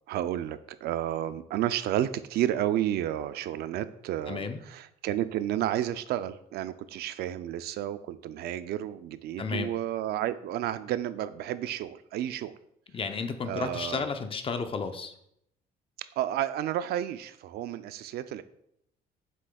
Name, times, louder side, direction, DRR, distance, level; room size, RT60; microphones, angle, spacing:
voice 1, 0.1-12.5 13.5-14.1 16.2-18.4, right 12 dB, 70° right, 13 dB, 0.4 m, -31 dB
voice 2, 4.3-4.6 9.4-9.7 12.9-15.1, left 5 dB, 30° left, 8 dB, 0.7 m, -32 dB
7.6 x 6.2 x 2.3 m, 0.73 s
cardioid pair, 110°, 17 cm